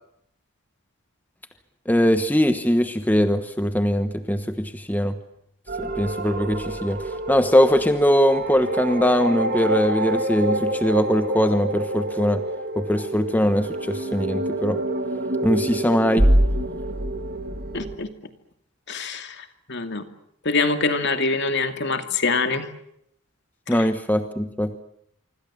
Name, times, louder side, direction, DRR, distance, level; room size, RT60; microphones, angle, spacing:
voice 1, 1.9-5.2 5.8-12.4 12.8-14.8 15.4-16.3 23.7-24.8, equal, 10° left, 8 dB, 1.2 m, -21 dB
sound 1, 5.7-18.0, right 1 dB, 45° right, 2.5 m, -26 dB
voice 2, 17.7-18.1 18.9-19.3 19.7-20.0 20.4-22.6, left 3 dB, 55° left, 7 dB, 2.5 m, -24 dB
25.5 x 25.5 x 7.4 m, 0.73 s
head